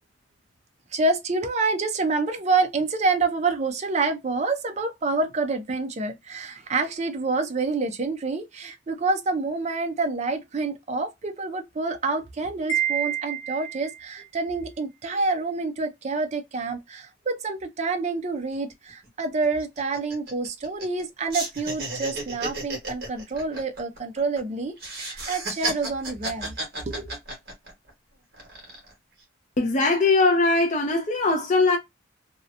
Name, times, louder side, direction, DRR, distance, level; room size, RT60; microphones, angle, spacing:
voice 1, 0.9-26.5 26.9-27.1, right 3 dB, 35° right, 0.4 m, -27 dB
Wind chime, 12.7-14.1, right 9 dB, 70° left, 0.7 m, -28 dB
sound 1, 18.5-18.6 18.9-19.1 19.4-21.0 21.3-24.4 24.8-27.9 28.3-28.9, right 2 dB, 50° right, 1.2 m, -33 dB
voice 2, 29.6-31.8, left 3 dB, 35° left, 0.4 m, -21 dB
2.8 x 2.1 x 2.5 m
head